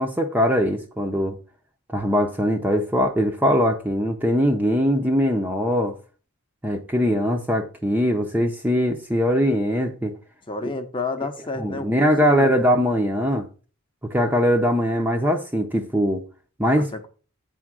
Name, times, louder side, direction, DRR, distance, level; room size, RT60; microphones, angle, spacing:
voice 1, 0.0-1.4 1.9-6.0 6.6-10.1 10.6-10.7 11.6-13.5 14.0-16.2 16.6-16.9, equal, 10° right, 0.6 m, -21 dB
voice 2, 10.5-12.5 16.7-17.1, left 3 dB, 20° left, 0.8 m, -30 dB
8.2 x 3.7 x 6.1 m
head